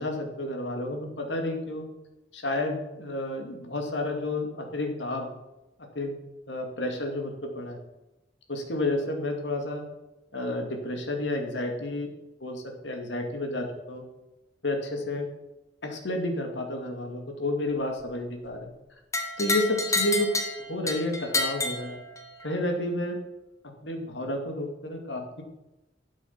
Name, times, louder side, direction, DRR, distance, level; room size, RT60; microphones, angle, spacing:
voice 1, 0.0-1.9 2.3-5.3 5.9-6.2 6.5-7.8 8.5-9.8 10.3-12.1 12.4-14.0 14.6-15.3 15.8-18.7 19.4-20.3 20.6-22.0 22.4-23.2 23.8-25.4, left 1 dB, 80° left, 3 dB, 2.5 m, -31 dB
sound 1, 19.1-22.5, left 2 dB, 20° left, 1.6 m, -29 dB
12.0 x 8.3 x 5.8 m, 0.97 s
head